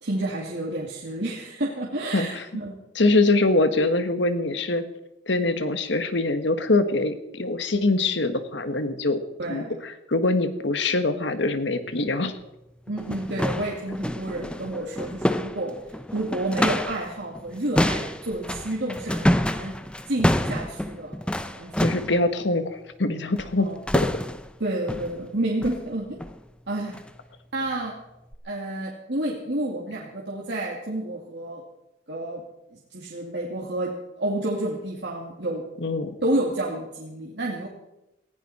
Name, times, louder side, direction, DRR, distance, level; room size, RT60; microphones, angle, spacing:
voice 1, 0.0-2.8 9.4-9.7 12.9-15.7 16.1-19.8 20.1-21.2 21.5-21.9 23.6-23.8 24.6-26.2 26.7-27.0 27.5-28.0 28.4-31.6 32.1-32.4 32.7-35.6 36.2-37.7, right 1 dB, 65° right, -2 dB, 2.4 m, -30 dB
voice 2, 2.1-2.4 2.9-4.8 5.3-9.2 9.5-12.4 21.8-23.7 23.9-24.1 35.8-36.2, left 2 dB, 70° left, 10 dB, 1.4 m, -23 dB
sound 1, 12.2-12.3 12.9-17.1 17.3-22.2 23.4-23.6 23.9-24.5 24.9-25.2 25.6-25.8 26.2-26.4 26.9-27.1 27.6-27.7 28.3-28.4, left 1 dB, 5° left, 0.7 m, -27 dB
18.5 x 16.0 x 4.3 m, 0.93 s
head